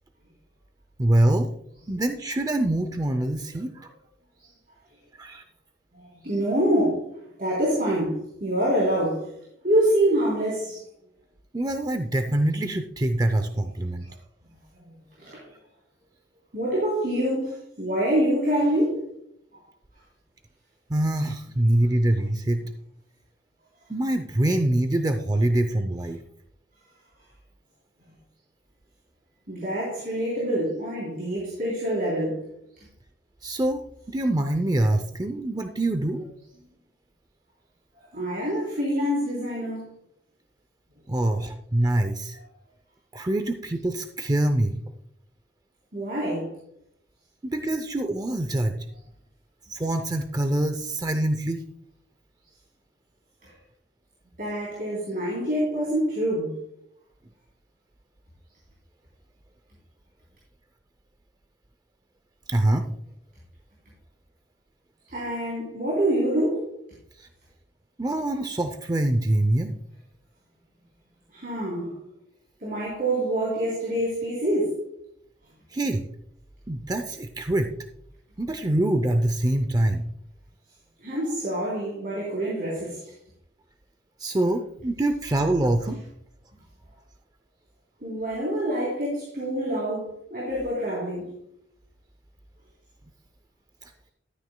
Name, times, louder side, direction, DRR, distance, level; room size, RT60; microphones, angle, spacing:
voice 1, 1.0-1.5 1.9-3.9 5.2-5.4 11.5-14.1 20.9-22.6 23.9-26.2 33.4-33.8 34.1-36.3 41.1-42.4 43.1-44.7 47.4-48.8 49.7-51.6 62.5-62.9 67.2-67.3 68.0-69.7 75.7-76.1 76.7-77.7 78.4-80.1 84.2-86.0 93.8-93.9, right 1 dB, 20° right, 0.5 m, -24 dB
voice 2, 5.9-7.1 7.4-9.3 9.6-10.8 14.8-14.9 15.2-15.5 16.5-19.0 29.5-32.4 38.1-39.9 45.9-46.5 53.4-53.5 54.4-56.6 65.1-66.7 71.3-71.9 72.6-74.8 81.0-83.1 88.0-91.3, right 1 dB, 45° right, 3.3 m, -26 dB
13.0 x 9.3 x 2.2 m
head